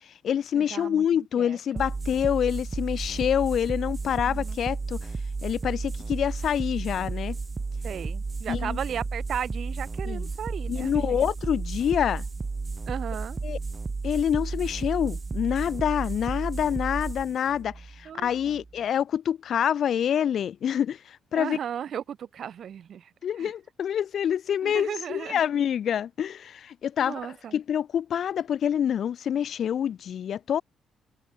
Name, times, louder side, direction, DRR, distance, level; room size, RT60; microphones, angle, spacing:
voice 1, 0.0-5.0 5.4-7.4 8.5-8.8 10.1-10.2 10.7-12.2 13.4-13.6 14.0-21.6 23.2-30.6, left 9 dB, 60° left, 1.5 m, -27 dB
voice 2, 0.5-1.9 4.0-4.6 7.8-11.2 12.9-13.4 18.0-18.6 21.3-23.5 24.6-25.4 27.0-27.6, right 9 dB, 60° right, 1.4 m, -36 dB
sound 1, 1.8-18.8, right 4 dB, 25° right, 1.3 m, -33 dB
cardioid pair, 90°, 0 cm